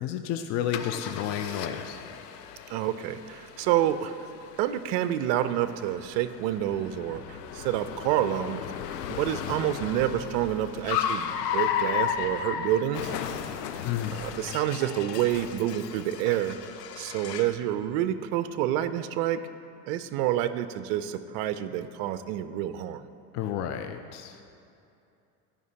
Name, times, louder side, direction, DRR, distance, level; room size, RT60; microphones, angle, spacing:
voice 1, 0.0-2.0 13.8-14.2 23.3-24.4, left 10 dB, 35° left, 7 dB, 0.4 m, -31 dB
Car, 0.7-17.6, left 9 dB, 75° left, 0.7 m, -35 dB
voice 2, 2.7-4.2 4.6-8.7 9.1-13.1 14.1-16.6 17.0-19.4 19.9-23.0, right 12 dB, 50° right, 12 dB, 0.5 m, -28 dB
13.5 x 5.3 x 2.8 m, 2.6 s
hypercardioid pair, 85°, 49 cm